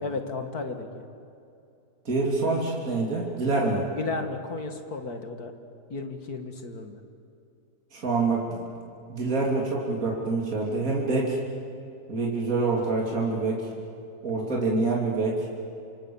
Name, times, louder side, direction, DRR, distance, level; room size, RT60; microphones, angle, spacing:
voice 1, 0.0-1.0 4.0-5.5 5.9-7.0 14.5-14.8, left 3 dB, 60° left, 6 dB, 2.4 m, -34 dB
voice 2, 2.1-3.9 7.9-8.6 9.1-11.4 12.1-13.7 14.2-15.4, right 3 dB, 55° right, -2 dB, 3.6 m, -26 dB
28.0 x 26.0 x 7.2 m, 2.5 s
omnidirectional pair, 1.8 m